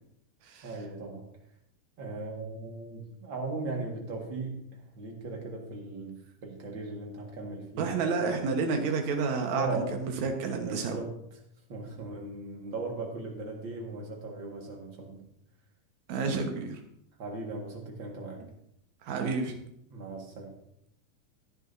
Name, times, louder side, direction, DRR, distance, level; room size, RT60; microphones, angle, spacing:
voice 1, 0.6-1.3 2.0-7.9 9.5-10.0 10.5-11.1 11.7-15.3 17.2-18.5 19.9-20.5, right 3 dB, 40° right, 0 dB, 2.1 m, -38 dB
voice 2, 7.8-11.0 16.1-16.8 19.0-19.6, right 4 dB, 65° right, 3 dB, 2.5 m, -30 dB
16.0 x 10.0 x 2.7 m, 0.76 s
omnidirectional pair, 3.7 m